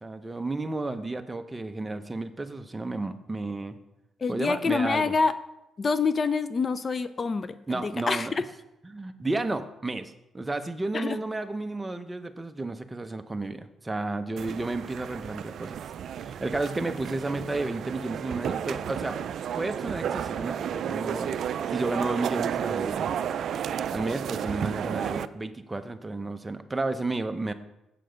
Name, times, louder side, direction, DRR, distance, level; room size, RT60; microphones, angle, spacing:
voice 1, 0.0-3.8 4.3-5.1 7.7-8.4 8.8-15.8 16.2-19.2 19.5-21.3 21.7-23.1 23.9-27.5, right 2 dB, 15° right, 9 dB, 0.7 m, -32 dB
voice 2, 4.2-5.3 5.8-8.3 10.9-11.2, left 4 dB, 40° left, 13 dB, 0.5 m, -26 dB
sound 1, 14.4-25.3, right 8 dB, 65° right, 0.4 m, -32 dB
7.7 x 7.7 x 5.1 m, 0.90 s
cardioid pair, 90°, 0 cm